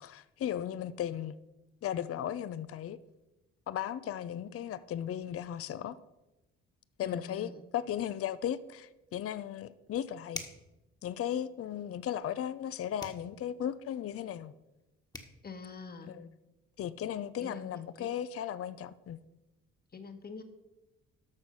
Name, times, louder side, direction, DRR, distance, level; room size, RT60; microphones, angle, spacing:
voice 1, 0.0-1.4 1.8-3.0 3.7-6.0 7.0-10.4 11.0-14.5 16.0-16.3 16.8-19.2, left 10 dB, 50° left, 0.5 m, -36 dB
voice 2, 7.0-7.5 15.4-16.1 17.4-18.1 19.9-20.4, left 4 dB, 30° left, 1.4 m, -45 dB
sound 1, 10.3-10.7 13.0-13.3 14.8-14.9 15.1-15.4, left 2 dB, 15° left, 1.4 m, -42 dB
11.5 x 6.4 x 5.5 m
cardioid pair, 90°, 30 cm